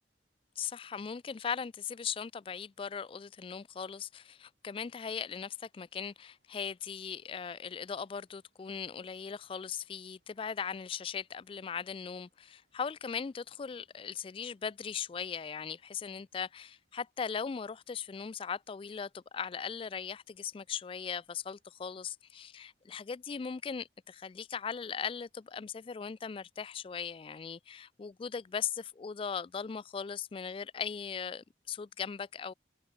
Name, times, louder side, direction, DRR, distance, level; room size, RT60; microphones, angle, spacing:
voice 1, 0.6-32.5, left 6 dB, 30° left, 0.3 m, -39 dB
Thunder / Rain, 5.2-24.3, left 1 dB, 55° left, 7.3 m, -87 dB
Car passing by / Traffic noise roadway noise / Engine, 5.9-23.0, right 2 dB, 60° right, 7.6 m, -85 dB
head